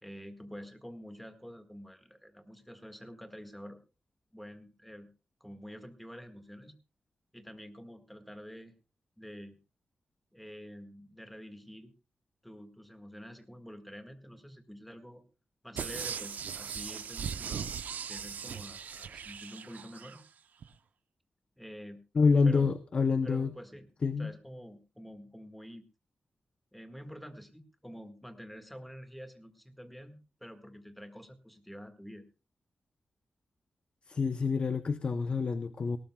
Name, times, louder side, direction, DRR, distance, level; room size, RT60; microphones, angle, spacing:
voice 1, 0.0-3.8 4.3-5.1 5.4-6.8 7.3-8.7 9.2-9.6 10.3-11.9 12.4-15.2 15.6-17.7 18.1-20.2 21.6-22.0 22.4-22.7 23.2-23.9 24.2-25.8 26.7-32.2, equal, ahead, 7 dB, 1.7 m, -48 dB
sound 1, 15.8-20.2 20.6-20.7, right 7 dB, 85° right, 0.7 m, -39 dB
voice 2, 22.1-23.5 24.0-24.3 34.1-36.0, left 4 dB, 40° left, 11 dB, 0.7 m, -27 dB
18.5 x 18.5 x 2.3 m, 0.30 s
wide cardioid pair, 160°, 3 cm